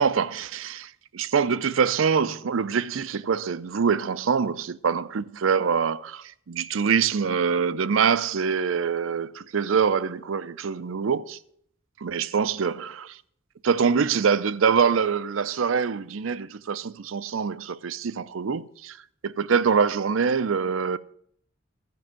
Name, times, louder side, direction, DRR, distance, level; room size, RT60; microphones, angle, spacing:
voice 1, 0.0-11.4 12.0-13.2 13.6-19.0 19.2-21.0, right 6 dB, 90° right, 0.5 m, -24 dB
13.5 x 5.4 x 8.7 m
head